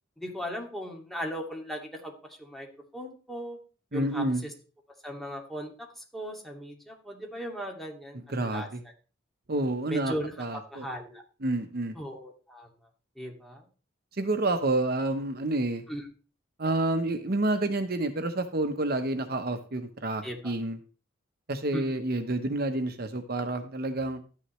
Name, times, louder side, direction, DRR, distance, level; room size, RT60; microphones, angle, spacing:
voice 1, 0.2-2.7 2.9-3.6 3.9-4.5 5.0-8.7 9.9-11.2 11.9-12.7 13.2-13.7 15.9-16.1 20.2-20.5 21.7-22.0, equal, ahead, 0 dB, 2.2 m, -38 dB
voice 2, 3.9-4.4 8.3-8.8 9.5-10.8 11.4-12.0 14.1-15.8 16.6-20.8 21.5-24.2, right 2 dB, 50° right, 8 dB, 0.9 m, -29 dB
12.5 x 9.7 x 3.2 m, 0.36 s
head